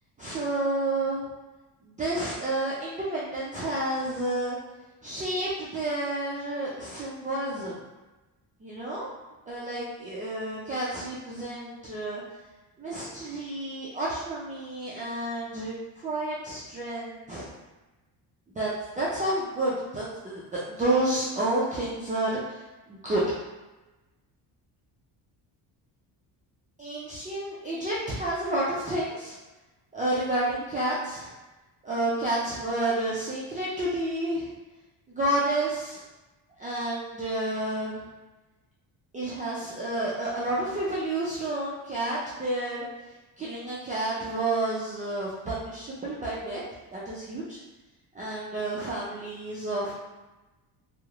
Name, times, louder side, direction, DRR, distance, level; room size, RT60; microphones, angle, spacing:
voice 1, 0.2-1.2 1.8-4.6 5.0-7.8 8.6-9.1 9.5-12.2 12.8-15.7 16.0-17.5 18.5-22.6 22.9-23.2 26.8-29.4 29.9-31.3 31.8-34.5 35.1-36.0 36.6-38.0 39.1-42.9 43.4-46.6 46.9-47.6 48.1-49.9, right 1 dB, 20° right, -9 dB, 0.3 m, -30 dB
2.9 x 2.0 x 2.3 m, 1.1 s
cardioid pair, 135°, 43 cm